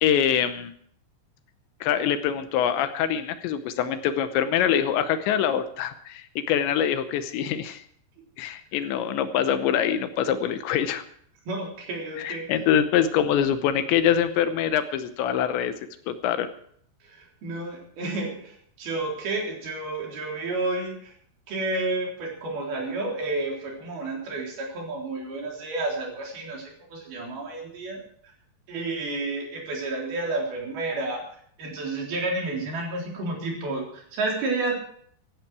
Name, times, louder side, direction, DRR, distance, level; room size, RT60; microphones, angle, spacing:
voice 1, 0.0-0.7 1.8-7.8 8.4-11.0 12.2-15.7 16.1-16.5, left 9 dB, 80° left, 10 dB, 3.1 m, -24 dB
voice 2, 11.5-12.5 17.1-21.1 21.5-28.0 28.7-31.2 31.6-34.8, right 2 dB, 55° right, -1 dB, 5.6 m, -30 dB
16.5 x 14.5 x 4.8 m, 0.62 s
omnidirectional pair, 5.3 m